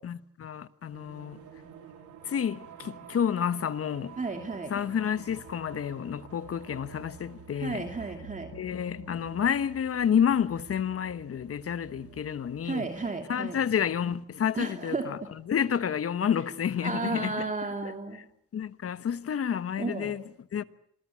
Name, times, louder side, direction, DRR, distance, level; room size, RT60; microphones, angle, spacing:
voice 1, 0.0-1.4 2.2-4.2 4.7-7.9 8.5-12.9 13.3-15.2 15.5-17.4 17.8-17.9 18.5-20.2 20.5-20.6, left 8 dB, 50° left, 1.3 m, -29 dB
sound 1, 0.9-13.1, right 9 dB, 90° right, 2.9 m, -50 dB
voice 2, 4.2-4.7 7.6-8.5 12.6-13.6 14.5-15.3 16.8-18.3 19.8-20.1, right 3 dB, 25° right, 2.7 m, -33 dB
26.5 x 19.5 x 8.6 m
cardioid pair, 90°, 30 cm